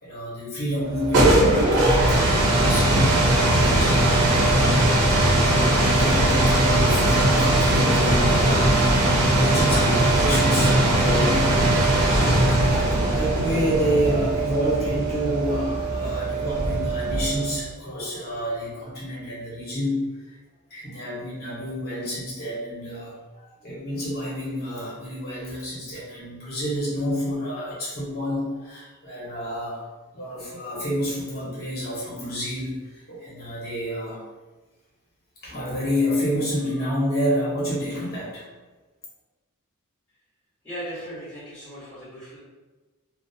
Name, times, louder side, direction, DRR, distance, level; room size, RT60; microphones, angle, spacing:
voice 1, 0.0-4.7 5.1-5.4 5.7-20.4 20.7-29.9 30.1-34.2 35.4-38.5, equal, 45° left, -7 dB, 1.0 m, -29 dB
sound 1, 0.8-17.6, right 1 dB, 90° right, 0.6 m, -20 dB
voice 2, 40.6-42.4, equal, 15° left, -12 dB, 0.9 m, -37 dB
2.5 x 2.0 x 2.6 m, 1.2 s
head